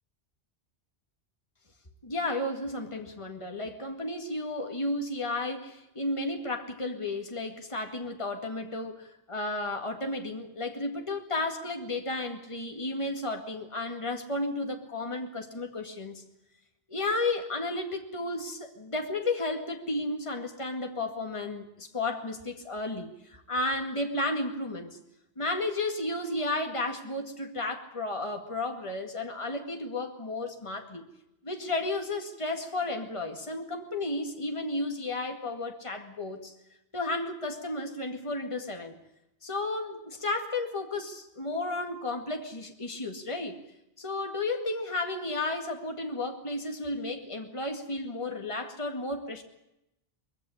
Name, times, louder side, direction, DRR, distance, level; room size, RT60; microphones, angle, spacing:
voice 1, 2.0-16.2 16.9-25.0 25.4-31.1 31.4-36.5 36.9-39.0 39.4-43.6 44.0-49.4, left 2 dB, 30° left, 4 dB, 2.1 m, -33 dB
21.0 x 16.0 x 9.9 m, 0.86 s
omnidirectional pair, 1.1 m